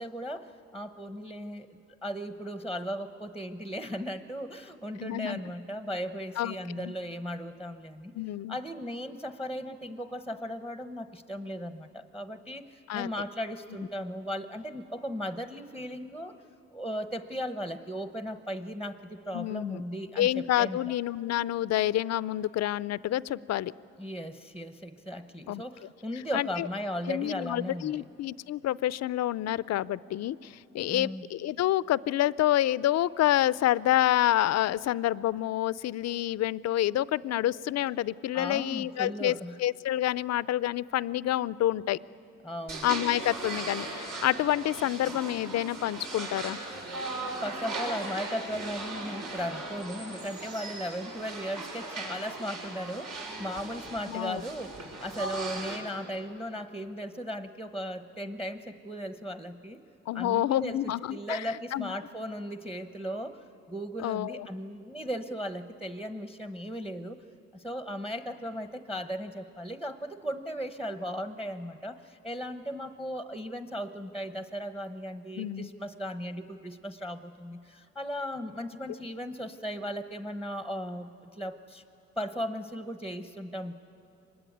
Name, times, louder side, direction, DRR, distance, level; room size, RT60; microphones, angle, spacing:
voice 1, 0.0-8.1 8.5-16.3 16.7-20.8 24.0-28.0 30.9-31.2 38.3-39.6 42.4-42.9 47.4-59.8 60.1-67.2 67.5-81.8 82.2-83.7, equal, 5° right, 9 dB, 0.9 m, -37 dB
voice 2, 5.0-5.4 6.4-6.9 8.2-8.6 12.9-13.1 19.3-19.8 20.2-23.7 25.5-25.6 26.3-26.7 27.1-42.0 42.8-46.6 54.1-54.4 60.1-61.9 64.0-64.5 75.4-75.7, left 13 dB, 60° left, 19 dB, 0.5 m, -28 dB
sound 1, 42.7-55.8, right 2 dB, 70° right, 5.5 m, -38 dB
24.5 x 20.5 x 9.3 m, 2.7 s
cardioid pair, 90°, 30 cm